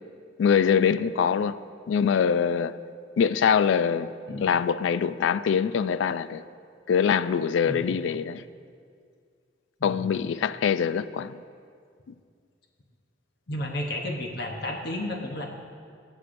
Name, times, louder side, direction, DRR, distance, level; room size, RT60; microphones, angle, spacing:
voice 1, 0.4-1.6 1.9-2.8 3.2-4.1 4.4-6.4 6.9-8.4 9.8-11.4, left 7 dB, 80° left, 0.3 m, -23 dB
voice 2, 13.5-15.5, left 1 dB, 55° left, 0.9 m, -32 dB
21.0 x 8.1 x 2.6 m
head